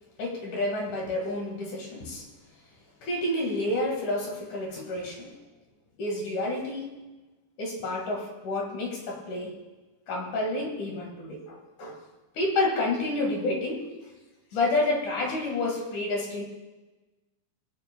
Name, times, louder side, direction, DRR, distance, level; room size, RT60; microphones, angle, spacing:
voice 1, 0.2-2.2 3.0-5.4 6.0-7.0 7.6-9.6 10.1-12.0 12.4-13.9 14.5-16.4, left 2 dB, 55° left, 1 dB, 2.8 m, -29 dB
23.0 x 10.5 x 2.2 m, 1.2 s
omnidirectional pair, 5.0 m